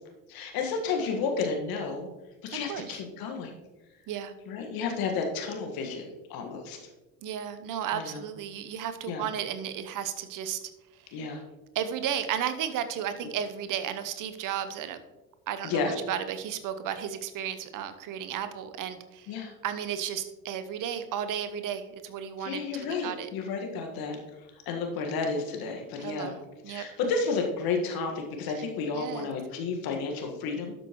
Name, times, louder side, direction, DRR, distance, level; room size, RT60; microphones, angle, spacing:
voice 1, 0.3-2.1 2.4-3.5 4.5-6.8 7.9-8.2 9.1-9.3 11.1-11.4 15.6-15.9 19.3-19.5 22.4-26.4 26.7-30.7, left 4 dB, 55° left, 3 dB, 1.7 m, -32 dB
voice 2, 7.2-10.6 11.7-15.0 15.5-19.3 19.6-23.3 26.0-26.9 28.9-29.3, right 9 dB, 45° right, 11 dB, 0.9 m, -34 dB
12.0 x 6.2 x 3.1 m, 1.1 s
figure-of-eight pair, 60°, 43 cm